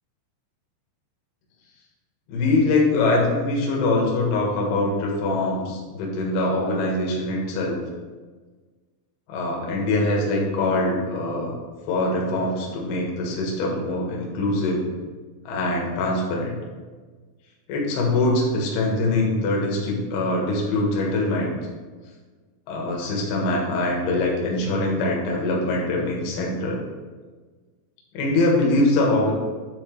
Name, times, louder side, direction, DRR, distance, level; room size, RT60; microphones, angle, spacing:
voice 1, 2.3-7.8 9.3-11.5 11.9-14.8 15.4-16.6 17.7-21.5 22.7-26.8 28.1-29.3, left 2 dB, 65° left, -2 dB, 3.0 m, -23 dB
9.6 x 4.3 x 4.6 m, 1.4 s
omnidirectional pair, 5.4 m